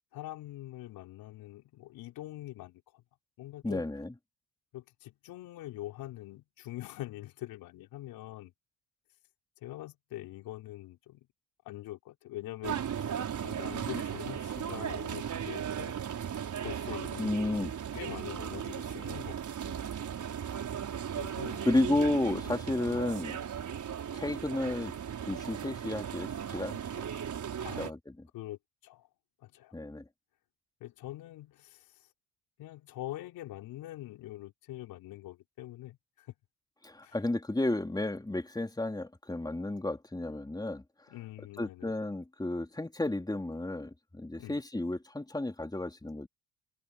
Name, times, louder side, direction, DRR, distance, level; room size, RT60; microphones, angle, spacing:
voice 1, 0.1-3.0 3.4-3.8 4.7-8.5 9.6-11.3 11.6-16.0 16.6-17.7 17.9-19.4 19.7-19.8 21.2-21.7 22.4-22.6 27.6-27.9 28.3-29.1 29.4-29.8 30.8-32.1 32.6-36.3 37.0-37.2 41.1-41.9 44.4-44.6, left 15 dB, 75° left, 4.1 m, -44 dB
voice 2, 3.6-4.1 17.2-17.7 21.6-23.4 24.1-24.9 25.3-27.0 27.8-28.3 29.7-30.1 36.8-40.8 41.6-46.3, left 2 dB, 10° left, 3.3 m, -32 dB
sound 1, 12.6-27.9, right 8 dB, 55° right, 5.0 m, -37 dB
hypercardioid pair, 55°, 36 cm